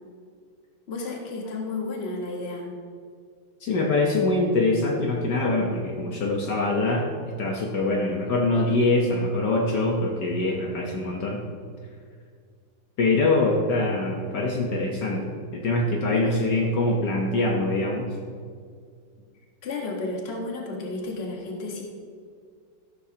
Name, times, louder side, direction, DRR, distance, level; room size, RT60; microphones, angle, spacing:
voice 1, 0.9-2.7 16.1-16.4 19.6-21.8, left 2 dB, 35° left, 0 dB, 1.5 m, -32 dB
voice 2, 3.6-7.1 7.4-11.5 13.0-18.1, left 2 dB, 60° left, -1 dB, 1.6 m, -24 dB
13.5 x 12.5 x 2.9 m, 2.1 s
omnidirectional pair, 2.2 m